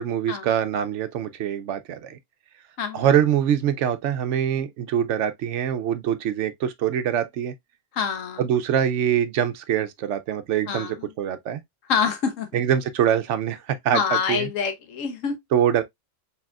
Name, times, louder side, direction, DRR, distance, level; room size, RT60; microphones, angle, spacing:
voice 1, 0.0-2.2 2.9-7.5 8.4-11.6 12.5-14.5 15.5-15.8, right 9 dB, 70° right, 0.8 m, -24 dB
voice 2, 8.0-8.4 10.7-10.9 11.9-12.5 13.9-15.3, left 6 dB, 80° left, 1.3 m, -25 dB
4.9 x 3.4 x 2.3 m
omnidirectional pair, 1.3 m